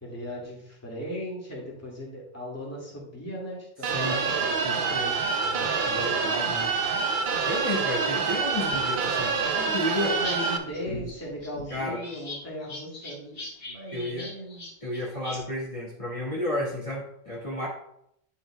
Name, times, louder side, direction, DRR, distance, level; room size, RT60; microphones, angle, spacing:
voice 1, 0.0-6.0 9.5-14.6, equal, 15° left, -5 dB, 2.2 m, -38 dB
voice 2, 3.8-4.2 4.6-5.2 5.8-6.8 7.4-9.3 9.7-10.2 11.7-12.0 13.9-14.3 14.8-17.7, left 1 dB, 30° left, -9 dB, 2.0 m, -32 dB
sound 1, 3.8-10.6, right 5 dB, 55° right, 0.8 m, -26 dB
sound 2, 8.6-10.3 10.6-15.4, left 2 dB, 65° left, 1.9 m, -40 dB
10.5 x 5.5 x 2.4 m, 0.73 s
omnidirectional pair, 1.1 m